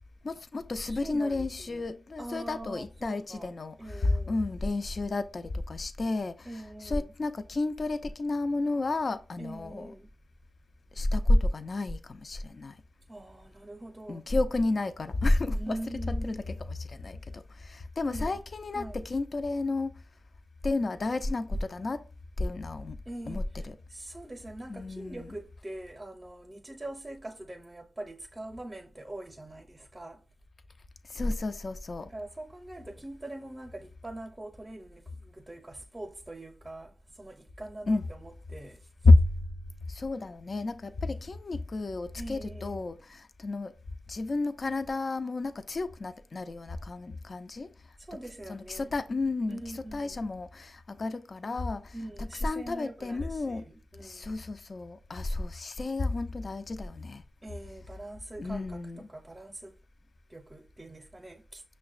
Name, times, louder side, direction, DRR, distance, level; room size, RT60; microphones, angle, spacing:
voice 1, 0.2-9.9 11.0-12.7 14.1-15.8 16.2-19.9 20.6-22.0 22.4-23.0 23.3-23.8 24.7-25.4 31.1-32.1 37.9-38.1 39.0-39.3 39.9-43.7 44.1-47.7 48.5-51.9 52.2-53.7 54.0-57.2 58.4-59.1, left 2 dB, 55° left, 0.4 m, -30 dB
voice 2, 0.9-1.9 2.2-4.4 6.4-7.1 9.4-10.1 13.1-14.2 15.5-16.4 18.1-18.4 18.7-19.1 23.1-23.6 23.9-30.2 32.0-38.9 42.2-42.8 48.0-48.9 49.5-50.2 51.9-54.3 57.4-59.8 60.3-61.6, right 1 dB, 20° right, 0.6 m, -43 dB
5.8 x 2.1 x 2.4 m
cardioid pair, 50°, 0 cm